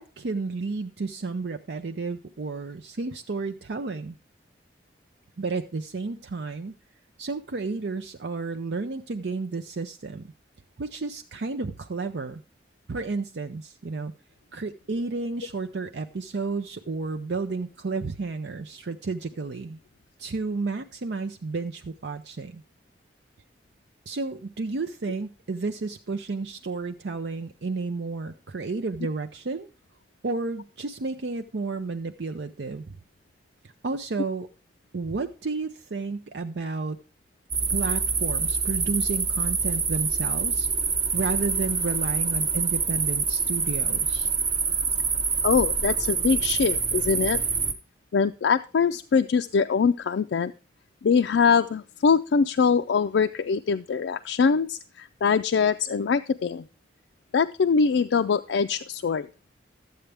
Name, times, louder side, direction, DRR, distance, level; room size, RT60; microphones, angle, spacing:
voice 1, 0.0-4.1 5.4-6.7 7.2-10.3 10.8-12.4 12.9-14.1 14.5-19.8 20.2-22.6 24.1-29.7 30.2-33.0 33.6-34.5 34.9-37.0 37.7-40.7 41.1-44.3, right 3 dB, 70° right, 7 dB, 0.6 m, -32 dB
sound 1, 37.5-47.7, right 5 dB, 30° right, 0.9 m, -26 dB
voice 2, 45.4-47.4 48.1-50.5 51.0-56.6 57.3-59.3, left 5 dB, 85° left, 7 dB, 0.4 m, -23 dB
12.5 x 8.0 x 3.4 m, 0.32 s
head